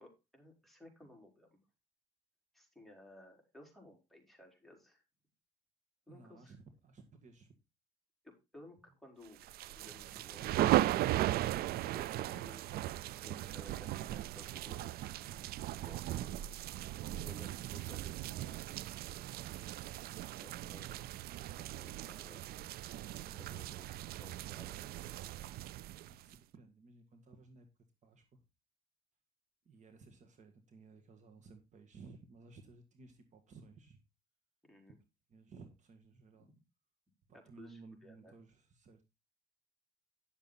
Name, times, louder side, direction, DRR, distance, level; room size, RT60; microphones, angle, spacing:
voice 1, 0.0-1.6 2.5-5.0 6.1-6.5 8.2-10.7 11.9-12.6 13.2-14.9 15.8-16.4 17.2-19.0 20.4-21.1 21.5-22.5 23.3-23.9 24.2-25.2 34.7-35.0 36.3-36.5 37.6-38.3, left 1 dB, ahead, 1 dB, 4.4 m, -57 dB
voice 2, 6.1-7.5 10.0-11.1 15.2-15.6 19.2-19.4 25.7-27.7 28.0-28.4 29.6-34.0 35.3-36.5 37.3-39.0, right 4 dB, 45° right, 5 dB, 1.8 m, -57 dB
sound 1, 9.4-26.4, right 14 dB, 65° right, 0.4 m, -37 dB
10.5 x 7.2 x 4.0 m, 0.25 s
cardioid pair, 110°, 17 cm